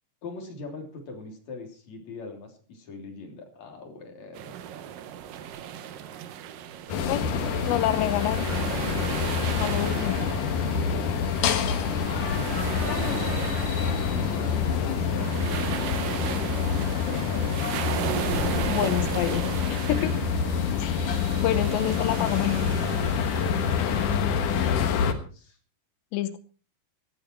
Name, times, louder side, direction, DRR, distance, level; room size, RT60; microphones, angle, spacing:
voice 1, 0.2-4.6 6.9-7.9 9.3-10.3 10.9-13.4 14.1-16.5 17.3-17.7 23.5-25.6, left 3 dB, 45° left, 2 dB, 4.3 m, -42 dB
sound 1, 4.4-24.2, right 9 dB, 70° right, 2.3 m, -36 dB
sound 2, 6.9-25.1, left 7 dB, 60° left, 2.5 m, -27 dB
voice 2, 7.7-8.5 9.6-10.2 12.9-13.2 18.7-20.2 20.8-22.7 23.2-23.4 26.1-26.4, left 13 dB, 90° left, 11 dB, 3.2 m, -28 dB
18.0 x 13.5 x 4.6 m, 0.39 s
omnidirectional pair, 4.9 m